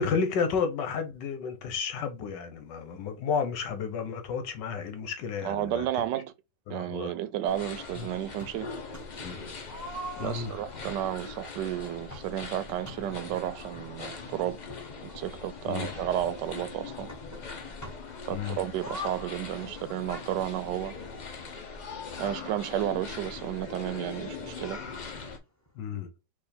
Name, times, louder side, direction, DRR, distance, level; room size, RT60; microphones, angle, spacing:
voice 1, 0.0-5.9 6.7-7.1 8.0-8.1 9.2-9.4 10.2-10.5 15.6-15.9 18.3-18.6 25.8-26.1, left 6 dB, 80° left, 1.6 m, -32 dB
voice 2, 5.4-6.3 6.7-8.7 10.2-14.6 15.1-17.1 18.3-21.0 22.2-24.8, right 12 dB, 80° right, 1.2 m, -32 dB
sound 1, 7.4-25.4, left 4 dB, 60° left, 0.4 m, -41 dB
sound 2, 8.4-9.3 9.7-13.5 14.2-14.3 14.5-16.5 17.1-18.2 18.7-21.5 22.3-24.2 24.6-24.7 24.9-25.0 25.7-25.8, left 1 dB, 15° left, 0.7 m, -45 dB
4.9 x 2.5 x 4.2 m
omnidirectional pair, 1.9 m